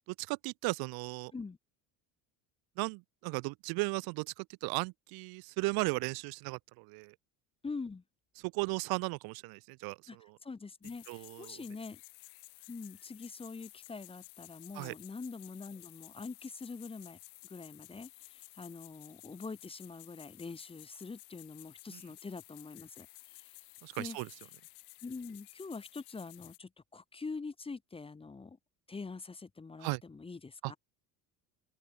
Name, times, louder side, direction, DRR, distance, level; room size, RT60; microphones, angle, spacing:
voice 1, 0.2-1.3 2.8-7.1 8.5-10.0 11.1-11.6 14.7-14.9 23.8-24.3 29.8-30.0 30.6-30.7, right 27 dB, 60° right, 0.5 m, -36 dB
voice 2, 7.6-8.0 10.1-12.0 12.7-17.2 17.5-23.6 24.0-24.2 25.0-28.6 28.9-30.8, left 4 dB, 15° left, 0.8 m, -44 dB
sound 1, 10.8-26.6, left 27 dB, 70° left, 1.4 m, -55 dB
open air
supercardioid pair, 100°, 41 cm